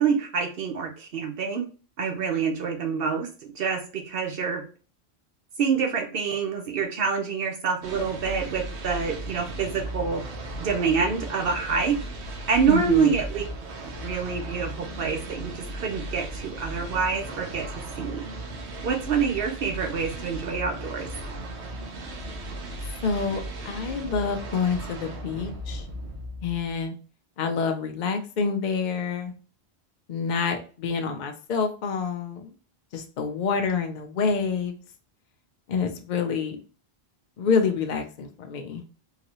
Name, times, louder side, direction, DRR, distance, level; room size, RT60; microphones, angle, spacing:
voice 1, 0.0-1.6 2.0-3.3 3.5-4.6 5.6-10.2 10.6-12.0 12.5-13.4 13.8-17.6 18.0-18.2 18.8-21.1, right 6 dB, 65° right, 3 dB, 0.8 m, -26 dB
sound 1, 7.8-26.8, right 1 dB, 85° right, 1.0 m, -36 dB
voice 2, 12.7-13.2 23.0-25.8 26.4-26.9 27.4-29.3 30.1-32.5 32.9-34.8 35.7-36.6 37.4-38.8, left 5 dB, 55° left, 5 dB, 0.6 m, -27 dB
3.9 x 2.7 x 2.8 m, 0.37 s
omnidirectional pair, 1.1 m